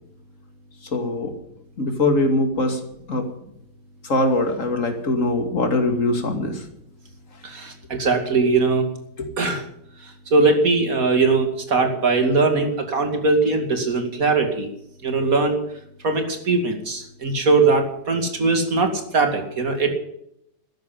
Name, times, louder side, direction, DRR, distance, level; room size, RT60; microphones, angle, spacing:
voice 1, 0.9-1.3 1.8-2.8 3.1-3.3 4.0-6.6 9.2-9.3, left 2 dB, 45° left, 5 dB, 2.7 m, -22 dB
voice 2, 7.4-8.8 9.4-9.6 10.0-14.7 15.0-15.6 16.0-19.9, right 3 dB, 50° right, 5 dB, 2.8 m, -20 dB
13.5 x 10.5 x 9.2 m, 0.76 s
omnidirectional pair, 1.9 m